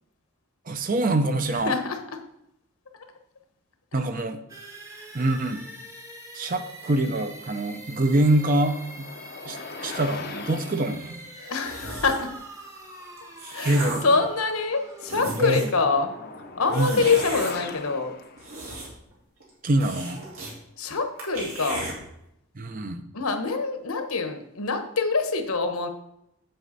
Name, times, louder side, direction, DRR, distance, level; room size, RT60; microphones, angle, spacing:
voice 1, 0.7-1.8 3.9-4.4 5.1-5.6 6.3-9.1 9.5-11.2 13.6-14.1 15.4-15.7 16.7-17.0 19.6-20.2 22.6-23.0, right 1 dB, 40° right, 8 dB, 0.6 m, -25 dB
voice 2, 1.5-2.0 2.9-3.1 3.9-4.0 5.0-5.1 11.4-12.3 13.5-16.1 16.6-18.1 20.8-21.9 23.1-25.9, left 4 dB, 80° left, 6 dB, 1.1 m, -25 dB
sound 1, 4.5-18.2, right 1 dB, 15° right, 0.9 m, -45 dB
sound 2, 7.6-11.2 15.1-18.9, left 4 dB, 45° left, 0.6 m, -40 dB
sound 3, 11.7-12.3 13.0-14.2 14.7-14.8 15.0-15.8 16.7-17.5 18.2-19.1 19.4-19.5 19.8-20.5 20.9-21.0 21.2-21.9, right 2 dB, 75° right, 3.0 m, -35 dB
7.8 x 7.8 x 4.1 m, 0.80 s
head